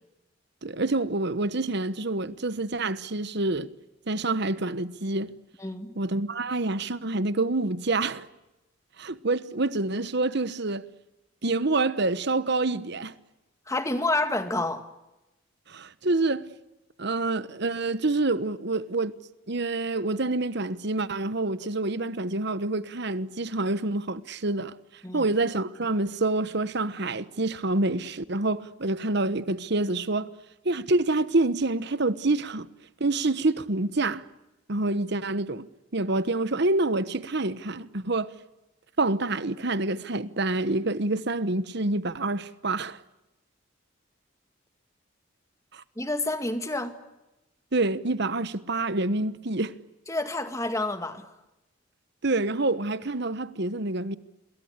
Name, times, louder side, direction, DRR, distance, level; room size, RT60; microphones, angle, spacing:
voice 1, 0.6-3.7 4.1-5.3 5.9-8.3 9.0-10.9 11.4-13.1 15.7-16.5 17.0-19.2 19.5-24.8 25.1-30.3 30.6-32.7 33.0-34.2 34.7-35.7 35.9-38.3 39.0-43.0 45.7-45.8 47.7-49.7 52.2-54.2, right 2 dB, 55° right, 1.2 m, -27 dB
voice 2, 5.6-5.9 13.7-14.8 25.0-25.3 46.0-46.9 50.1-51.3, left 2 dB, 15° left, 2.0 m, -28 dB
27.0 x 22.5 x 8.2 m
head